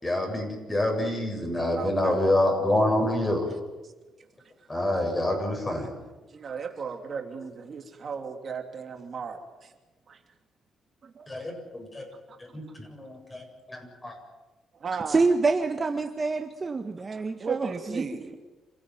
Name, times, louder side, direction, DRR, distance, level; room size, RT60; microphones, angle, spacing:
voice 1, 0.0-3.5 4.7-5.9 11.3-12.0 12.5-14.2, left 1 dB, 20° left, 3 dB, 7.8 m, -27 dB
voice 2, 1.8-2.3 3.8-3.9 4.6-4.8 6.3-9.7 10.1-10.2 11.0-11.3 12.3-12.4 12.7-12.8 14.8-15.2 17.4-18.4, right 5 dB, 45° right, 4 dB, 2.9 m, -36 dB
voice 3, 15.1-18.1, right 3 dB, 30° right, 6 dB, 1.5 m, -26 dB
28.0 x 16.0 x 9.4 m, 1.2 s
cardioid pair, 110°, 0 cm